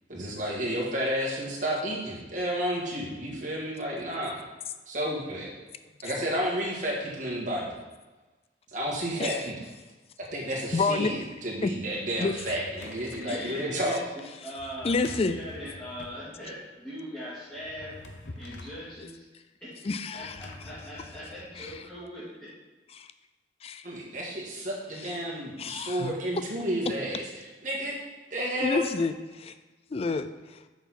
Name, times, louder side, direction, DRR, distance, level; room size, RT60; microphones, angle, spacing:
voice 1, 0.1-4.4 4.9-5.5 6.0-7.7 8.7-9.5 10.3-14.1 23.8-28.0 28.3-28.8, equal, 45° right, -3 dB, 1.8 m, -31 dB
voice 2, 10.7-11.1 11.6-11.7 12.2-12.3 13.3-13.4 14.8-15.4 19.0-19.1 19.8-20.5 21.6-21.7 22.9-23.1 23.6-23.9 25.6-26.1 28.6-29.5 29.9-30.6, left 3 dB, 35° left, 11 dB, 0.4 m, -29 dB
Drawer open or close, 12.1-13.4 14.6-16.2 17.5-18.9 20.2-21.8, left 2 dB, 85° left, 0.9 m, -46 dB
voice 3, 13.2-18.0 18.4-19.3 19.6-19.8 20.1-22.5, equal, 10° left, -12 dB, 2.4 m, -40 dB
6.9 x 6.0 x 4.2 m, 1.2 s
head